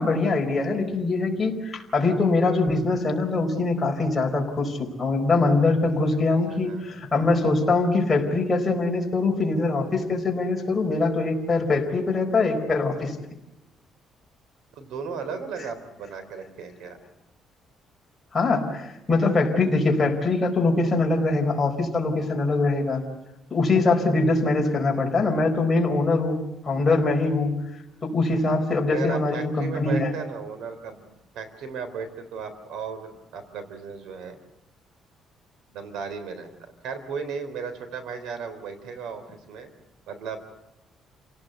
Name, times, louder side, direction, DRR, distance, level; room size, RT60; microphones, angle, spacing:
voice 1, 0.0-13.1 18.3-23.0 23.5-27.5 28.0-30.1, left 3 dB, 20° left, 0 dB, 4.7 m, -23 dB
voice 2, 6.3-7.0 14.7-17.0 28.8-34.4 35.7-39.7 40.1-40.4, right 5 dB, 85° right, 10 dB, 3.7 m, -35 dB
28.5 x 18.0 x 8.1 m, 0.94 s
cardioid pair, 145°, 0 cm